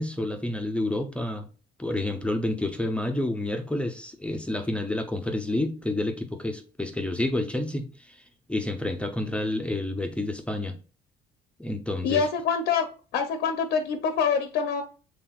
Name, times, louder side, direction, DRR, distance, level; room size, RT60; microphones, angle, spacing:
voice 1, 0.0-1.5 1.8-8.2 8.5-10.8 11.6-12.3, left 1 dB, 5° left, 0.5 m, -29 dB
voice 2, 12.0-12.9 13.1-14.8, left 6 dB, 80° left, 0.7 m, -25 dB
5.8 x 3.4 x 2.3 m
cardioid pair, 110°, 17 cm